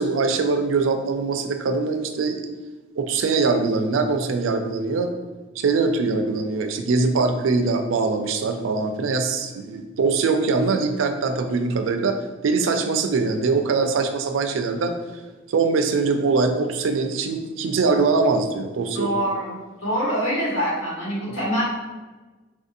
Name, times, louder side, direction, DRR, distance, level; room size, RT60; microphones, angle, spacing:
voice 1, 0.0-2.4 3.0-5.1 5.6-12.2 12.4-14.9 15.5-19.1, right 4 dB, 75° right, 6 dB, 0.4 m, -22 dB
voice 2, 18.9-19.5 19.8-21.6, equal, 90° left, -5 dB, 1.3 m, -24 dB
4.4 x 2.6 x 2.5 m, 1.2 s
head